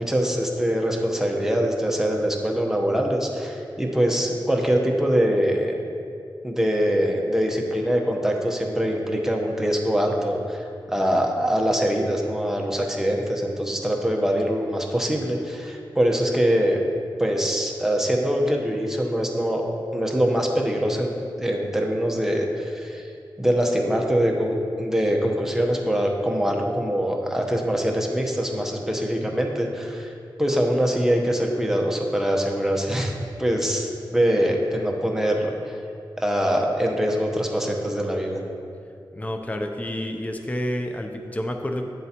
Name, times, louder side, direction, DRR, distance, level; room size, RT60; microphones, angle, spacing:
voice 1, 0.0-5.8 6.4-16.8 17.2-19.6 19.9-21.1 21.4-23.1 23.4-30.1 30.4-35.7 36.2-38.4, equal, 5° right, 0 dB, 0.9 m, -23 dB
voice 2, 39.1-41.8, left 1 dB, 15° left, 4 dB, 0.5 m, -29 dB
9.9 x 7.7 x 2.9 m, 2.5 s
wide cardioid pair, 105°, 8 cm